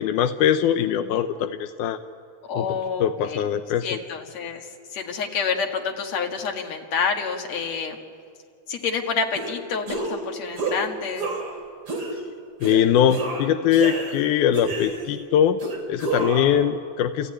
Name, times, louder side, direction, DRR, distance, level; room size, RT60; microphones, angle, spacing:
voice 1, 0.0-2.0 2.6-2.7 3.0-4.0 12.6-15.6 15.9-17.3, left 9 dB, 90° left, 8 dB, 2.3 m, -21 dB
voice 2, 2.5-3.4 3.8-4.7 4.9-8.0 8.7-11.3, left 5 dB, 60° left, 2 dB, 3.1 m, -28 dB
sound 1, 9.3-9.5 9.9-10.2 10.6-10.8 11.2-11.5 11.9-12.2 12.6-12.8 13.1-14.2 14.5-15.2 15.6-16.6, right 3 dB, 45° right, 3.9 m, -29 dB
29.5 x 15.0 x 9.9 m, 2.2 s
omnidirectional pair, 3.5 m